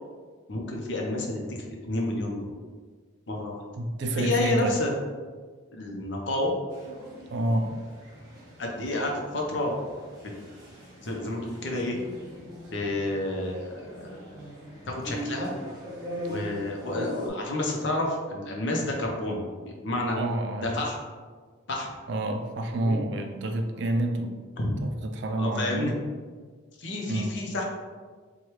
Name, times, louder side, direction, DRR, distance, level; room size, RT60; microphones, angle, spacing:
voice 1, 0.5-2.4 3.3-3.6 4.2-4.9 5.7-6.5 8.6-10.1 11.0-12.0 12.7-14.2 14.9-15.5 16.3-20.2 20.6-21.0 21.7-21.9 22.8-23.0 24.6-24.7 25.4-25.9 26.8-27.6, left 1 dB, 60° left, 0 dB, 0.7 m, -30 dB
voice 2, 3.8-4.8 7.3-7.7 20.1-20.7 22.1-24.4 24.8-26.0 27.1-27.4, right 1 dB, 60° right, 4 dB, 0.4 m, -28 dB
sound 1, 6.7-17.3, equal, 20° right, 0.9 m, -41 dB
4.5 x 2.3 x 3.1 m, 1.5 s
head